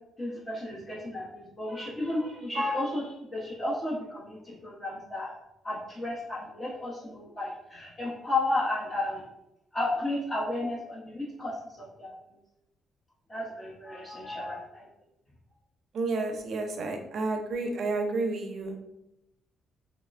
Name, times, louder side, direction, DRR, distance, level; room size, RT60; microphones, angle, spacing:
voice 1, 0.2-5.3 5.6-9.3 9.7-12.1 13.3-14.9, left 2 dB, 25° left, -6 dB, 0.7 m, -33 dB
voice 2, 15.9-18.8, right 3 dB, 65° right, 4 dB, 0.5 m, -30 dB
3.0 x 2.1 x 2.4 m, 0.84 s
cardioid pair, 90°, 0 cm